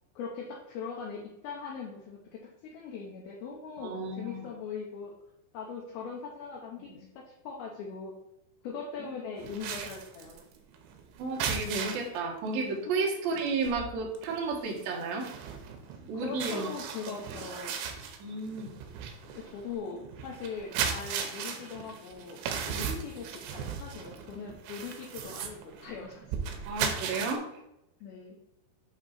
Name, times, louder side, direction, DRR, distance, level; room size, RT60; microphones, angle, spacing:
voice 1, 0.2-5.1 5.5-8.1 8.6-10.4 12.9-13.0 16.2-17.8 19.3-22.4 22.7-26.2 28.0-28.4, left 5 dB, 80° left, -2 dB, 2.3 m, -41 dB
voice 2, 3.8-4.4 9.0-9.1 11.2-15.3 16.1-16.7 17.3-17.4 18.2-18.7 26.7-27.4, right 3 dB, 70° right, 0 dB, 2.5 m, -32 dB
sound 1, 9.4-12.2 12.6-12.8 13.1-27.4, right 7 dB, 90° right, 3.0 m, -37 dB
8.0 x 2.9 x 4.1 m, 0.84 s
omnidirectional pair, 5.1 m